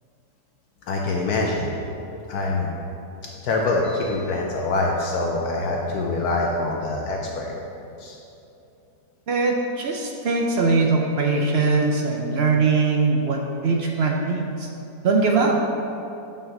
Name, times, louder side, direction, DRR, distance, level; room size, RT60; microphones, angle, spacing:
voice 1, 0.9-1.7 2.3-2.7 3.4-7.5 8.0-8.2 13.8-14.1, left 2 dB, 70° left, -1 dB, 1.1 m, -25 dB
voice 2, 9.3-14.7 15.0-15.6, right 4 dB, 65° right, 1 dB, 0.6 m, -21 dB
5.6 x 5.5 x 6.4 m, 2.8 s
omnidirectional pair, 1.8 m